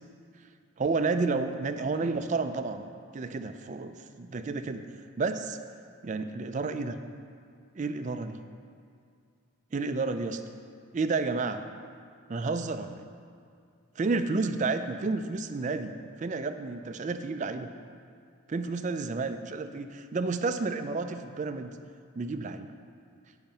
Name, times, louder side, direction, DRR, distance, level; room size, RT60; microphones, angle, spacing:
voice 1, 0.8-4.9 5.2-5.6 6.0-7.0 7.8-8.4 9.7-10.4 10.9-11.6 12.3-13.0 14.0-15.9 16.2-17.7 18.5-21.7 22.2-22.7, right 3 dB, 35° right, 9 dB, 0.3 m, -31 dB
8.9 x 5.7 x 5.3 m, 2.4 s
head